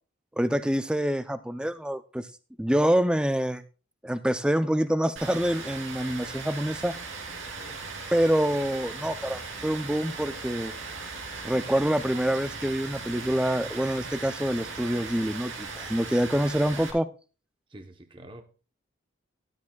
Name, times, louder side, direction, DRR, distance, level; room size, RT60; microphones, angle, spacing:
voice 1, 0.4-2.3 2.6-3.6 4.0-6.9 8.1-10.7 11.4-17.1, equal, 5° right, 0.4 m, -26 dB
Rain, 5.2-16.9, right 4 dB, 90° right, 3.0 m, -38 dB
voice 2, 17.7-18.4, right 1 dB, 25° right, 0.8 m, -47 dB
13.0 x 12.0 x 2.3 m
head